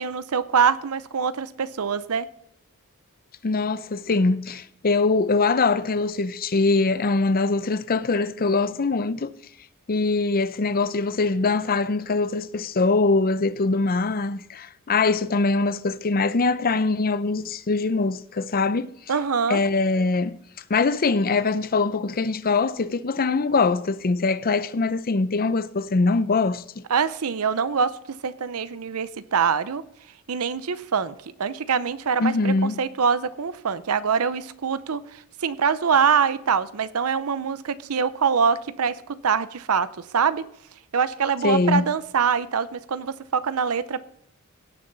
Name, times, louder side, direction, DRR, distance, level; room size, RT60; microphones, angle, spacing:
voice 1, 0.0-2.3 19.1-19.6 26.9-27.9 28.2-29.8 30.3-39.0 39.2-39.9 40.1-40.5 40.9-44.0, right 6 dB, 75° right, 0.6 m, -24 dB
voice 2, 3.4-9.3 9.9-18.9 19.5-20.4 20.7-26.8 32.2-32.8 41.4-41.8, left 3 dB, 40° left, 0.6 m, -23 dB
17.0 x 6.9 x 4.0 m
head